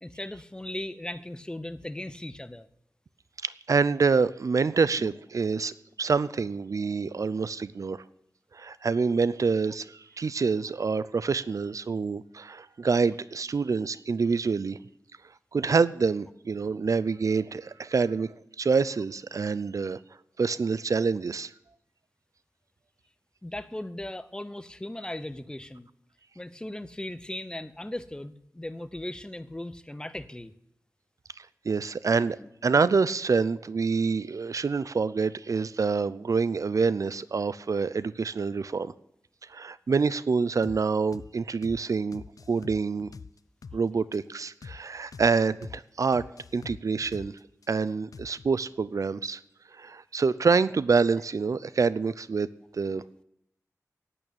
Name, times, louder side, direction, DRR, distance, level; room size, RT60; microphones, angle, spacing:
voice 1, 0.0-2.7 5.0-5.2 5.5-5.6 23.4-25.9 26.3-30.5 32.2-32.5, left 1 dB, 15° left, 13 dB, 0.8 m, -38 dB
voice 2, 3.4-8.0 8.5-14.8 15.5-20.0 20.4-21.5 31.4-32.4 32.6-38.9 39.5-43.1 43.7-46.2 46.5-47.3 47.7-49.4 49.7-52.5 52.7-53.0, right 4 dB, 65° right, 17 dB, 0.5 m, -26 dB
sound 1, 40.6-40.8 41.1-41.3 41.6-41.8 42.1-43.8 44.1-44.2 44.6-44.8 45.1-45.3 45.6-45.8 46.1-47.7 48.1-48.5, left 5 dB, 75° left, 0.5 m, -44 dB
11.0 x 8.9 x 8.6 m, 0.78 s
wide cardioid pair, 65°, 6 cm